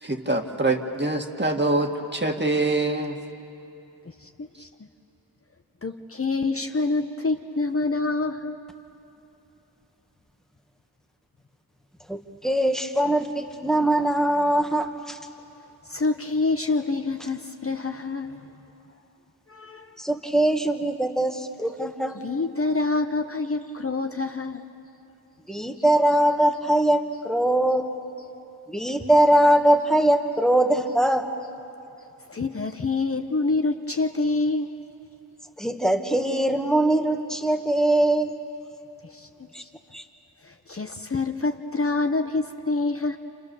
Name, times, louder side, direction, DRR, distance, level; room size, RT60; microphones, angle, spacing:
voice 1, 0.0-3.2, right 2 dB, 25° right, 2 dB, 2.0 m, -24 dB
voice 2, 4.1-4.7 5.8-8.6 15.8-18.5 19.5-20.0 22.2-24.6 32.3-34.7 39.0-39.3 39.6-39.7 40.4-43.2, left 3 dB, 35° left, 5 dB, 0.9 m, -27 dB
voice 3, 12.1-15.2 20.0-22.2 25.5-27.9 28.7-31.3 35.6-38.4 39.5-39.6 39.9-40.0, right 1 dB, ahead, 5 dB, 1.5 m, -22 dB
29.0 x 28.5 x 6.9 m, 2.9 s
wide cardioid pair, 95°, 39 cm